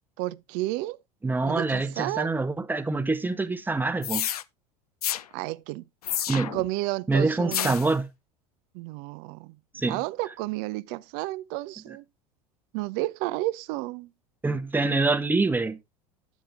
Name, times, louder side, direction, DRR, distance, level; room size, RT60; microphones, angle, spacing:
voice 1, 0.2-1.0 1.4-2.3 5.3-5.8 6.3-7.7 8.7-9.6 9.9-12.0 12.7-14.1, right 18 dB, 50° right, 0.5 m, -31 dB
voice 2, 1.2-4.3 6.3-6.5 7.1-8.1 9.7-10.0 14.4-15.8, right 3 dB, 10° right, 0.8 m, -25 dB
sound 1, 4.0-4.4 5.0-5.2 6.0-6.7 7.5-7.9, left 11 dB, 75° left, 0.5 m, -29 dB
10.0 x 7.2 x 3.5 m
figure-of-eight pair, 75°, 19 cm